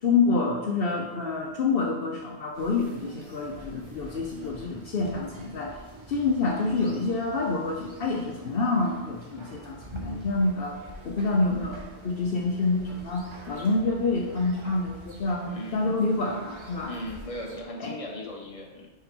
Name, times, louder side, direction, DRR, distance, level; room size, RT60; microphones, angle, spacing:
voice 1, 0.0-5.8 6.1-10.8 11.0-15.5 15.7-16.9 17.8-17.9, left 3 dB, 65° left, 0 dB, 0.9 m, -27 dB
sound 1, 2.5-17.6, right 1 dB, 30° right, 1.0 m, -46 dB
voice 2, 15.5-15.8 16.9-18.9, left 1 dB, 35° left, -1 dB, 1.2 m, -37 dB
5.9 x 4.7 x 5.2 m, 1.2 s
omnidirectional pair, 1.1 m